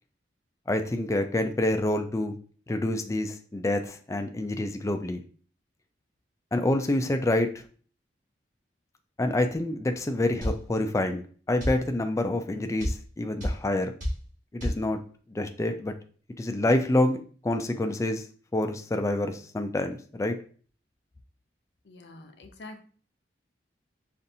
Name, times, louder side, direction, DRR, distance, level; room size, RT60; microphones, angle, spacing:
voice 1, 0.7-2.3 2.7-5.2 6.5-7.6 9.2-11.2 11.5-13.9 14.5-15.0 15.3-15.9 16.4-17.2 17.4-18.2 18.5-20.4, left 1 dB, 15° left, 6 dB, 0.3 m, -27 dB
sound 1, 10.4-10.6 11.6-11.8 12.8-13.0 13.4-13.6 14.0-14.2 14.6-14.8, equal, 45° right, 1.8 m, -28 dB
voice 2, 21.8-22.8, left 2 dB, 65° left, 5 dB, 0.6 m, -46 dB
5.3 x 2.5 x 2.6 m, 0.43 s
head